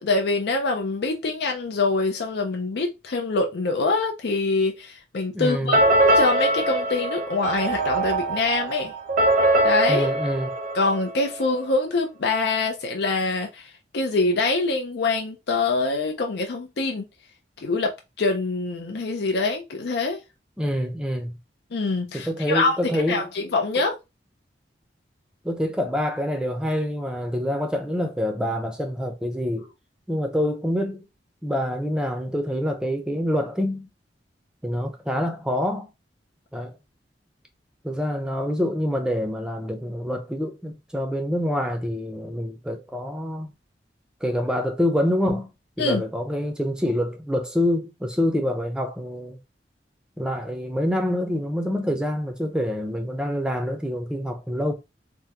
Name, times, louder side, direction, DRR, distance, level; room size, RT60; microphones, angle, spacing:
voice 1, 0.0-8.9 9.6-10.1 10.7-17.1 17.6-17.9 18.2-20.2 21.7-24.0 45.8-46.0, left 3 dB, 65° left, 0.5 m, -25 dB
voice 2, 5.3-5.8 9.9-10.5 20.6-21.3 22.1-23.3 25.4-29.7 30.1-31.0 31.4-33.9 34.6-35.9 36.5-36.7 37.8-43.5 44.2-45.5 45.8-49.4 50.2-54.7, equal, 5° right, 0.6 m, -26 dB
sound 1, 5.7-11.5, right 1 dB, 50° right, 0.7 m, -22 dB
3.4 x 2.2 x 2.8 m
head